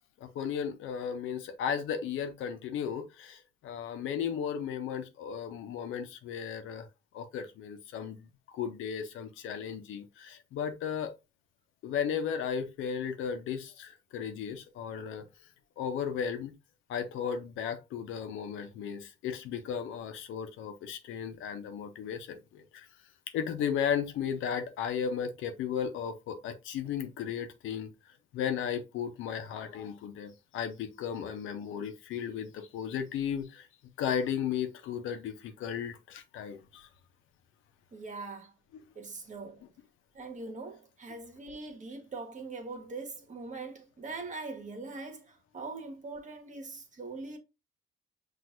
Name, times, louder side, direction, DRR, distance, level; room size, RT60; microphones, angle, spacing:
voice 1, 0.2-6.9 7.1-8.3 8.5-11.1 11.8-15.3 15.8-16.5 16.9-22.9 23.3-27.9 28.3-33.7 34.0-36.9, left 8 dB, 85° left, 0.8 m, -35 dB
voice 2, 37.9-38.5 38.9-39.6 40.1-47.4, right 3 dB, 40° right, 1.3 m, -42 dB
6.0 x 2.7 x 2.6 m
cardioid pair, 90°, 20 cm